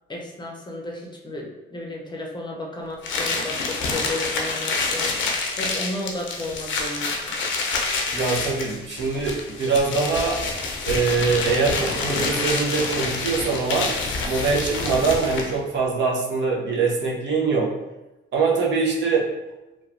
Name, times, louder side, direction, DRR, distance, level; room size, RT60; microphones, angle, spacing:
voice 1, 0.1-5.1 5.6-7.4, left 1 dB, 20° left, 0 dB, 0.5 m, -33 dB
sound 1, 3.0-15.6, left 3 dB, 75° left, 0.5 m, -27 dB
voice 2, 8.1-10.4 10.9-13.9 14.2-17.7 18.3-19.3, right 4 dB, 65° right, -1 dB, 0.7 m, -23 dB
3.0 x 2.2 x 2.5 m, 1.0 s
cardioid pair, 90°, 20 cm